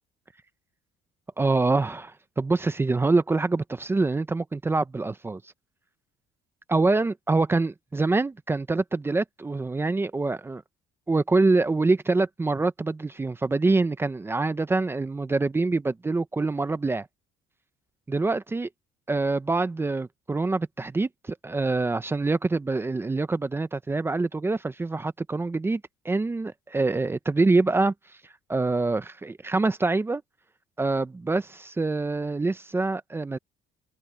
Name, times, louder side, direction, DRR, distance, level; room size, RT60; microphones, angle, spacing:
voice 1, 1.4-5.4 6.7-10.6 11.1-17.1 18.1-18.7 19.1-27.9 28.5-30.2 30.8-33.4, right 3 dB, 15° right, 0.6 m, -25 dB
open air
cardioid pair, 150°, 18 cm